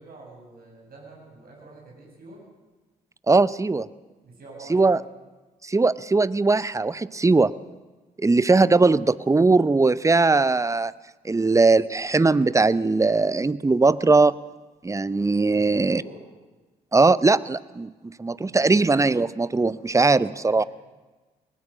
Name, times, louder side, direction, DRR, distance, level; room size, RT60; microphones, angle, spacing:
voice 1, 0.0-2.4 4.2-5.0 15.5-16.3 18.3-18.8 20.1-20.7, right 2 dB, 50° right, -2 dB, 7.9 m, -46 dB
voice 2, 3.3-3.9 4.7-5.0 5.6-7.5 8.2-10.9 11.2-14.4 14.8-16.0 16.9-17.9 18.2-20.6, right 3 dB, 15° right, 18 dB, 0.8 m, -20 dB
22.0 x 19.0 x 6.4 m, 1.2 s
hypercardioid pair, 45°, 19 cm